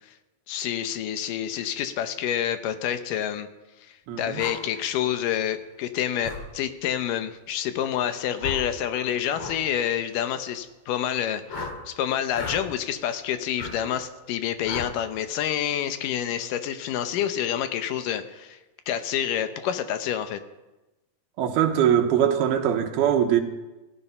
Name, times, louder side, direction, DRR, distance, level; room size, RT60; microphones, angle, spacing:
voice 1, 0.5-3.5 3.9-18.6 18.9-20.4, left 10 dB, 75° left, 2.2 m, -28 dB
voice 2, 4.1-4.4 21.4-23.4, right 9 dB, 85° right, 3.2 m, -22 dB
sound 1, 4.4-4.6 6.2-6.4 8.4-8.7 9.3-9.6 11.5-11.8 12.3-12.6 13.6-13.7 14.6-14.9, left 4 dB, 45° left, 3.2 m, -34 dB
15.5 x 15.0 x 5.6 m
omnidirectional pair, 4.3 m